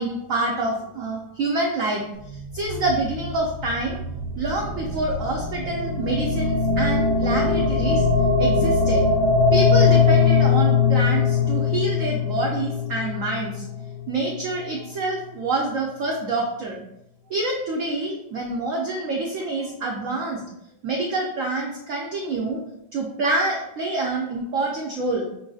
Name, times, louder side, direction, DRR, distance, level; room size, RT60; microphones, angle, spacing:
voice 1, 0.0-2.0 2.5-4.0 4.4-8.0 8.4-9.0 9.5-13.5 14.1-16.8 17.3-20.4 20.8-22.6 22.9-25.3, right 2 dB, 80° right, -1 dB, 0.7 m, -26 dB
sound 1, 2.2-14.4, left 5 dB, 40° left, 0.6 m, -21 dB
6.5 x 2.6 x 2.3 m, 0.80 s
omnidirectional pair, 2.1 m